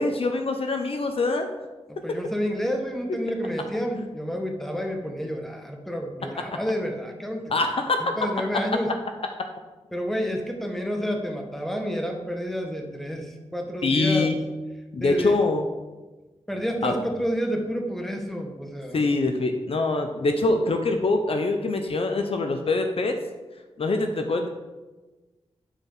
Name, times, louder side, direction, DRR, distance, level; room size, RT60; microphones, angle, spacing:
voice 1, 0.0-1.5 7.5-8.1 13.8-14.3 14.9-15.7 16.8-16.9 18.9-23.2 23.8-24.5, left 3 dB, 55° left, 5 dB, 0.8 m, -24 dB
voice 2, 1.9-7.5 8.2-8.9 9.9-14.3 15.0-15.4 16.5-19.0, equal, ahead, 2 dB, 1.4 m, -29 dB
11.0 x 4.7 x 5.6 m, 1.2 s
wide cardioid pair, 80°, 11 cm